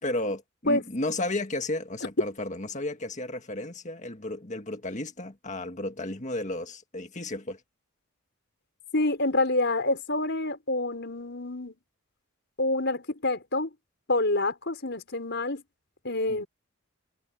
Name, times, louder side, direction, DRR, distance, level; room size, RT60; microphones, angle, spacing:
voice 1, 0.0-7.6 16.3-16.4, left 2 dB, 35° left, 1.8 m, -33 dB
voice 2, 8.9-11.8 12.6-13.7 14.1-15.6 16.0-16.5, left 2 dB, 55° left, 5.7 m, -27 dB
head